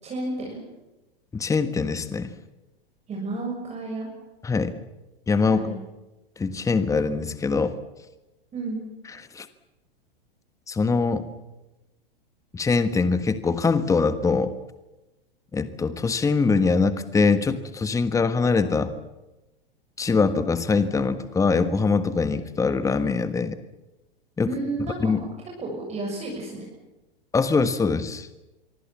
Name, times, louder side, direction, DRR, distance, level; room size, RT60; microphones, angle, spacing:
voice 1, 0.0-0.6 3.1-4.1 5.5-5.8 8.5-8.8 24.5-25.3 25.6-26.7, right 2 dB, 20° right, -1 dB, 7.1 m, -31 dB
voice 2, 1.3-2.3 4.4-4.7 5.3-5.6 6.4-7.7 9.3-9.5 10.7-11.2 12.5-14.5 15.5-18.9 20.0-23.6 24.4-24.5 25.0-25.2 27.3-28.3, left 4 dB, 10° left, 11 dB, 1.4 m, -23 dB
25.5 x 24.0 x 7.4 m, 1.0 s
figure-of-eight pair, 100°, 29 cm